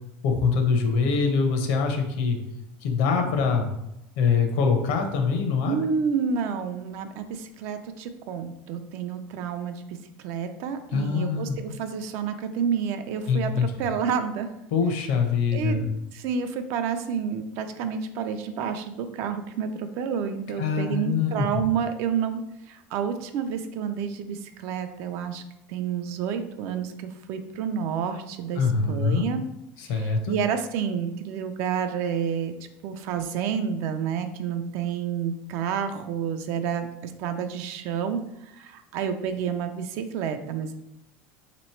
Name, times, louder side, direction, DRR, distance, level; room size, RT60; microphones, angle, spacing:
voice 1, 0.2-2.4 2.8-3.7 4.2-5.8 10.9-11.6 13.3-13.7 14.7-15.8 20.6-21.5 28.6-29.3 29.8-30.3, left 5 dB, 70° left, 4 dB, 0.8 m, -24 dB
voice 2, 5.7-10.0 10.2-14.5 15.5-15.8 16.1-25.4 25.7-29.4 29.9-32.5 32.8-40.7, right 7 dB, 55° right, 8 dB, 0.4 m, -29 dB
3.1 x 3.0 x 4.3 m, 0.85 s
cardioid pair, 150°, 5 cm